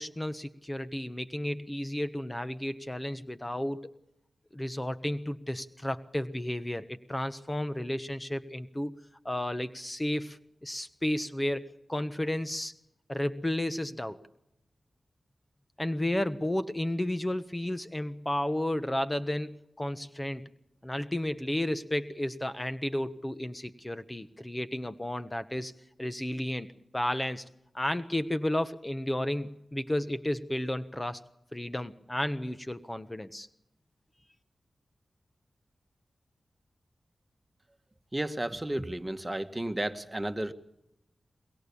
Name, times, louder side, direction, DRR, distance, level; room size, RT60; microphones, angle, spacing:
voice 1, 0.0-3.9 4.5-8.9 9.2-12.7 13.1-14.2 15.8-20.4 20.8-25.7 26.0-26.7 26.9-27.4 27.7-31.2 31.5-33.5, left 1 dB, 20° left, 11 dB, 1.3 m, -32 dB
voice 2, 38.1-40.5, right 1 dB, 25° right, 8 dB, 1.8 m, -33 dB
22.5 x 22.5 x 7.1 m, 0.83 s
cardioid pair, 40°, 0 cm